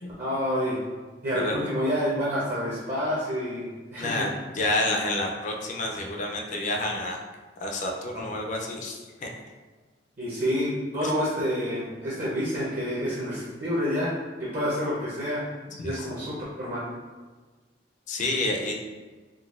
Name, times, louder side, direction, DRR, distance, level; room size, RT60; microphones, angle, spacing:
voice 1, 0.2-0.8 1.2-4.3 10.2-15.5 15.8-16.8, equal, 45° right, -7 dB, 0.6 m, -28 dB
voice 2, 4.0-7.2 7.6-9.3 11.0-11.1 15.8-16.0 18.1-18.7, left 2 dB, 45° left, 0 dB, 0.4 m, -29 dB
3.8 x 2.2 x 2.4 m, 1.3 s
head